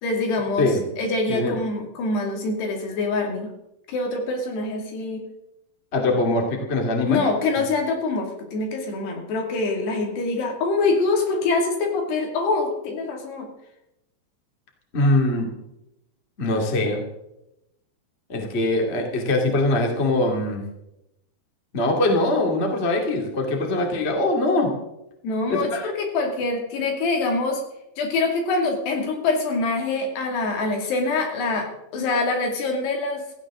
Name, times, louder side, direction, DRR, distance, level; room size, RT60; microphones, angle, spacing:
voice 1, 0.0-3.5 3.9-5.2 7.1-13.5 25.2-27.6 28.0-33.2, left 3 dB, 75° left, 2 dB, 4.5 m, -25 dB
voice 2, 5.9-7.2 7.6-7.7 14.9-15.5 16.4-17.0 18.3-20.6 21.7-24.7 25.5-25.8, left 2 dB, 20° left, 2 dB, 1.8 m, -22 dB
16.5 x 15.0 x 3.8 m, 0.85 s
omnidirectional pair, 4.9 m